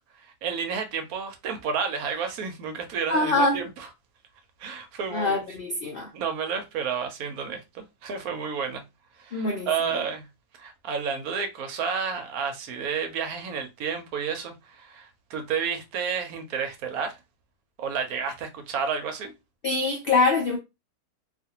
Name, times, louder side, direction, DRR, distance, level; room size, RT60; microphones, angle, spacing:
voice 1, 0.2-3.9 4.6-5.4 6.1-8.8 9.2-10.3 10.6-17.2 17.8-19.3, right 6 dB, 70° right, 1.0 m, -31 dB
voice 2, 3.1-3.6 5.1-6.1 9.3-9.7 19.6-20.6, left 3 dB, 75° left, 0.5 m, -24 dB
2.5 x 2.5 x 2.8 m
omnidirectional pair, 1.7 m